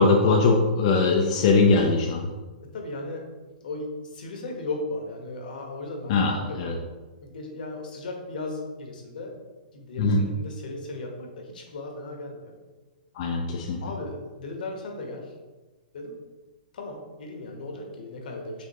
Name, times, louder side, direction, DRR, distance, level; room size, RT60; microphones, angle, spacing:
voice 1, 0.0-2.3 6.1-6.7 10.0-10.2 13.1-13.8, left 3 dB, 40° left, 0 dB, 0.4 m, -21 dB
voice 2, 2.6-3.3 3.6-6.9 7.2-9.4 9.7-12.6 13.8-15.3 15.9-16.2 16.7-18.7, left 2 dB, 70° left, 2 dB, 1.1 m, -36 dB
5.0 x 3.5 x 2.8 m, 1.3 s
hypercardioid pair, 160°, 5 cm